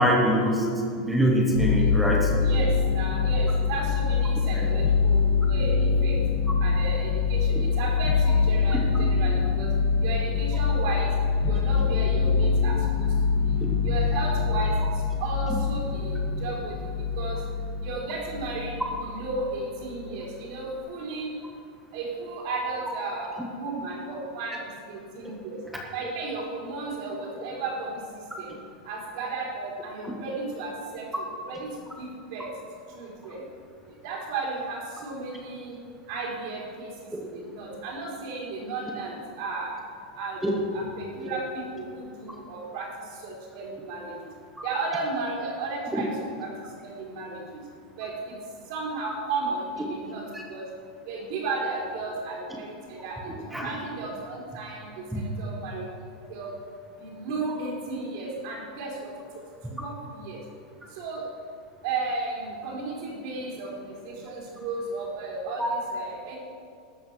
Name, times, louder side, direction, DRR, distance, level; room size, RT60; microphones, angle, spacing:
voice 1, 0.0-2.3 4.5-4.7 8.7-8.8 37.1-37.2 40.4-40.5 41.2-41.3 45.9-46.0 50.3-50.4 53.5-53.7 55.1-55.3 65.6-65.7, equal, 5° right, -1 dB, 1.1 m, -24 dB
sound 1, 1.5-19.0 19.3-20.1, left 5 dB, 55° left, 3.3 m, -24 dB
voice 2, 2.4-6.2 6.6-9.7 10.0-11.1 11.4-13.6 13.8-17.4 17.8-21.3 21.9-24.6 24.9-25.6 25.9-28.6 28.8-31.7 32.0-32.5 32.9-33.4 33.8-35.8 36.1-39.7 40.1-40.4 40.7-44.3 44.6-46.1 46.4-47.6 48.0-48.4 48.7-50.6 51.1-55.9 56.3-56.6 57.0-59.4 59.7-60.4 60.9-61.2 61.8-66.4, right 3 dB, 45° right, -2 dB, 4.0 m, -34 dB
13.5 x 8.9 x 6.2 m, 2.3 s
supercardioid pair, 180°, 4 cm